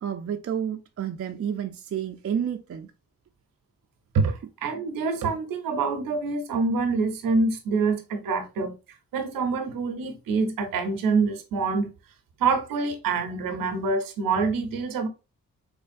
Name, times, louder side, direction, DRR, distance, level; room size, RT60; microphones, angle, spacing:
voice 1, 0.0-2.9, right 8 dB, 45° right, 0.5 m, -30 dB
voice 2, 4.1-8.8 9.1-11.9 12.4-15.1, right 4 dB, 90° right, 0.7 m, -26 dB
3.8 x 3.1 x 2.5 m
cardioid pair, 50°, 33 cm